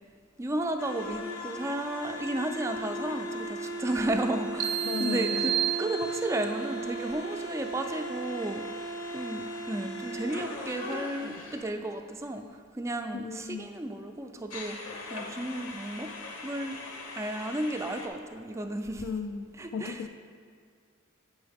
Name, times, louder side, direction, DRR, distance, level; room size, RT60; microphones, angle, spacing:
voice 1, 0.4-5.5 5.8-8.6 9.1-12.4 12.7-14.8 15.1-16.1 16.4-16.8 17.2-19.0 19.6-20.0, right 1 dB, 15° right, 5 dB, 0.3 m, -33 dB
sound 1, 0.8-11.7 14.5-18.1, right 1 dB, 65° left, 0.7 m, -37 dB
sound 2, 4.6-6.5, right 10 dB, 90° right, 0.4 m, -31 dB
voice 2, 4.9-5.5 13.1-13.7 19.0-20.1, left 5 dB, 80° left, 10 dB, 0.3 m, -35 dB
8.6 x 5.5 x 3.4 m, 2.1 s
head